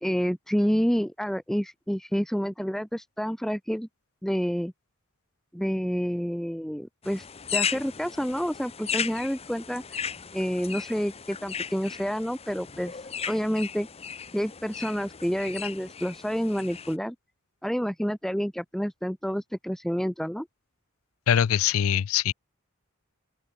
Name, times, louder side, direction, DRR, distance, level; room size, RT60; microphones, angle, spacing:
voice 1, 0.0-3.9 4.2-4.7 5.5-7.3 7.5-10.0 10.3-13.9 14.3-17.1 17.6-20.5, equal, ahead, 1.2 m, -29 dB
sound 1, 7.0-17.0, left 7 dB, 30° left, 0.9 m, -36 dB
voice 2, 21.3-22.3, left 9 dB, 80° left, 0.4 m, -23 dB
open air
head